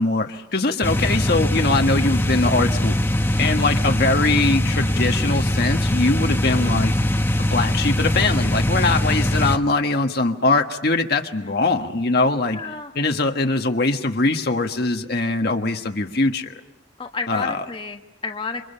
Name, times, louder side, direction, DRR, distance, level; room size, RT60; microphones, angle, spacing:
voice 1, 0.0-3.0 3.4-6.9 7.4-12.6 12.9-16.5 17.3-17.5, left 3 dB, 55° left, 4 dB, 1.4 m, -21 dB
sound 1, 0.8-9.6, left 1 dB, 10° left, 1.0 m, -21 dB
voice 2, 11.4-11.8 12.5-12.9 17.0-18.7, left 4 dB, 30° left, 4 dB, 1.4 m, -32 dB
29.5 x 25.5 x 5.7 m, 0.85 s
head